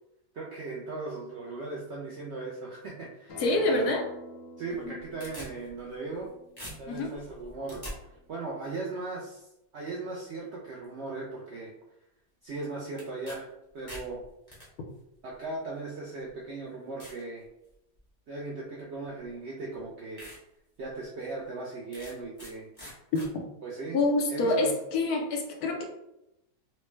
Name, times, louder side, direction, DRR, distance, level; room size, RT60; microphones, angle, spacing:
voice 1, 0.3-3.4 3.7-3.9 4.6-6.3 6.8-7.8 8.3-9.5 9.7-11.7 12.4-13.5 13.7-14.2 15.2-17.5 18.3-20.2 20.8-22.7 23.6-24.0 24.3-24.7, right 3 dB, 70° right, -3 dB, 0.6 m, -38 dB
Acoustic guitar, 3.3-8.5, equal, 90° left, 1.4 m, -49 dB
voice 2, 3.4-4.1 6.9-7.1 23.1-23.4 23.9-25.8, left 2 dB, 70° left, 2 dB, 1.1 m, -26 dB
sound 1, 4.7-6.3 6.6-7.9 13.0-13.4 13.7-14.7 15.5-15.6 16.3-16.4 17.0-17.2 17.7-18.1 19.2-19.3 19.8-19.9 20.2-20.4 20.8-20.9 21.9-22.5 22.8-23.3, equal, 20° left, 0.9 m, -44 dB
4.2 x 2.1 x 3.1 m, 0.87 s
omnidirectional pair, 1.7 m